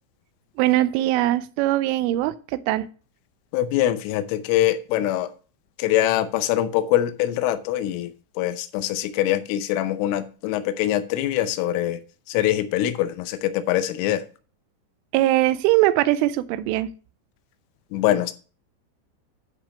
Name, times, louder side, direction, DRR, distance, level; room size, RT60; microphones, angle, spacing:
voice 1, 0.6-2.4 2.7-2.9 15.1-16.9, right 15 dB, 90° right, 3.1 m, -21 dB
voice 2, 3.5-5.3 5.8-8.1 8.4-12.0 12.3-14.2 17.9-18.3, left 13 dB, 85° left, 3.4 m, -23 dB
10.5 x 5.1 x 5.7 m
omnidirectional pair, 5.7 m